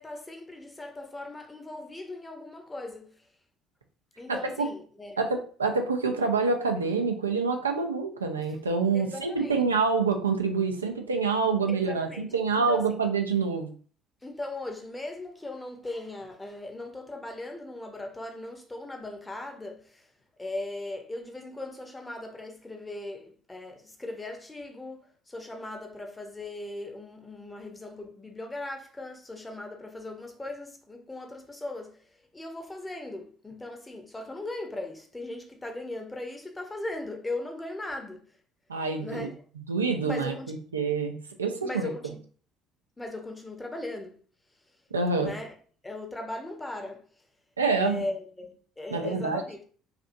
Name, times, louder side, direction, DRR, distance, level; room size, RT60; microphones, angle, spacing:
voice 1, 0.0-3.3 4.2-5.2 8.5-8.6 8.9-9.6 11.7-12.9 14.2-20.1 20.4-38.4 39.0-39.4 40.0-40.5 41.6-42.2 43.0-44.2 45.2-45.5 45.8-47.0 47.8-49.6, left 2 dB, 15° left, 0.7 m, -38 dB
voice 2, 5.2-13.7 38.7-39.3 39.7-41.9 44.9-45.3 47.6-48.0 48.9-49.4, right 4 dB, 85° right, 0.4 m, -27 dB
2.7 x 2.4 x 2.5 m
figure-of-eight pair, 55°, 0 cm